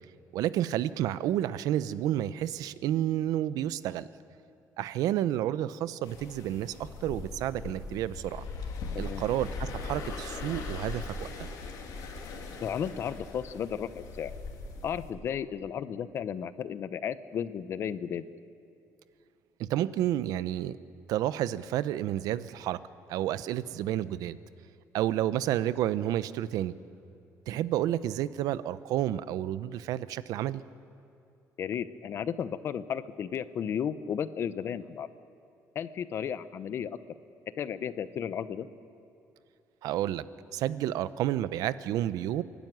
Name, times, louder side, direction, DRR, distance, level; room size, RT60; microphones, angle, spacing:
voice 1, 0.3-4.1 4.8-8.4 9.0-11.5 19.6-20.8 21.1-22.8 23.1-24.4 24.9-26.7 27.5-30.6 39.8-40.2 40.5-42.4, right 12 dB, 75° right, 15 dB, 0.7 m, -30 dB
sound 1, 6.0-15.1, left 3 dB, 75° left, 3.1 m, -40 dB
voice 2, 12.6-14.3 14.8-18.2 31.6-35.1 35.7-36.9 37.5-38.7, left 8 dB, 40° left, 14 dB, 0.7 m, -34 dB
27.5 x 12.5 x 9.2 m, 2.7 s
cardioid pair, 170°, 6 cm